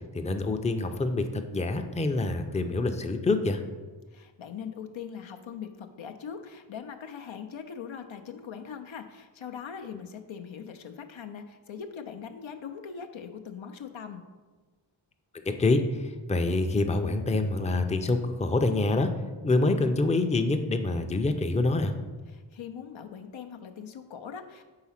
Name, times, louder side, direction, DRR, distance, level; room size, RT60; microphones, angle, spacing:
voice 1, 0.1-3.6 15.6-19.1 19.4-21.9, left 2 dB, 15° left, 7 dB, 0.4 m, -26 dB
voice 2, 4.1-14.2 22.3-24.6, left 7 dB, 85° left, 6 dB, 0.6 m, -41 dB
4.8 x 3.9 x 5.7 m, 1.3 s
wide cardioid pair, 60°, 46 cm